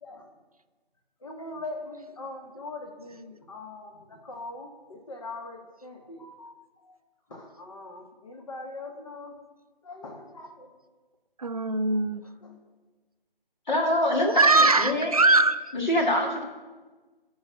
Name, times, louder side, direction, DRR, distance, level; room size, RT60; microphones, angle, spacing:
voice 1, 0.0-0.3 1.2-7.0 7.3-9.4 9.8-10.7 11.9-12.5, left 2 dB, 35° left, 0.8 m, -42 dB
voice 2, 11.4-12.2 14.3-15.7, right 3 dB, 40° right, 0.4 m, -21 dB
voice 3, 13.7-14.3 14.5-15.1 15.7-16.4, left 1 dB, 50° left, 2.1 m, -25 dB
9.7 x 4.7 x 6.9 m
figure-of-eight pair, 155°, 29 cm